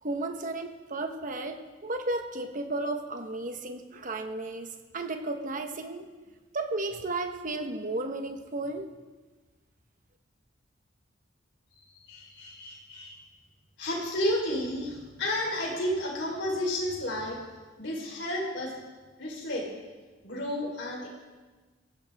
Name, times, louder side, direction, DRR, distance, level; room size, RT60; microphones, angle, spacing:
voice 1, 0.0-6.1 6.5-8.9, right 2 dB, 45° right, 6 dB, 1.3 m, -34 dB
voice 2, 11.7-13.2 13.8-17.4 17.8-18.7 19.2-19.7 20.2-21.1, left 1 dB, 70° left, -1 dB, 4.2 m, -32 dB
19.5 x 16.0 x 3.6 m, 1.3 s
head